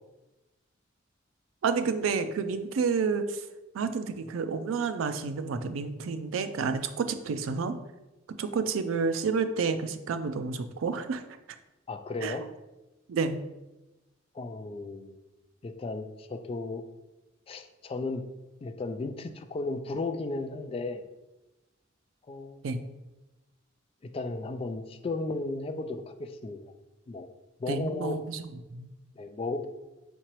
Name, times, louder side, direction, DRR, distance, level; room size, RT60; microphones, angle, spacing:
voice 1, 1.6-3.4 3.7-7.8 8.4-11.2 12.2-12.4 13.1-13.4 22.6-22.8 27.7-28.9, right 5 dB, 85° right, 9 dB, 0.4 m, -30 dB
voice 2, 11.9-12.4 14.3-15.2 15.6-16.8 17.5-18.2 18.6-21.0 22.3-22.9 24.1-26.6 27.1-27.3 27.6-28.1 29.2-29.7, left 3 dB, 30° left, 8 dB, 0.3 m, -35 dB
4.4 x 3.7 x 3.0 m, 1.0 s
head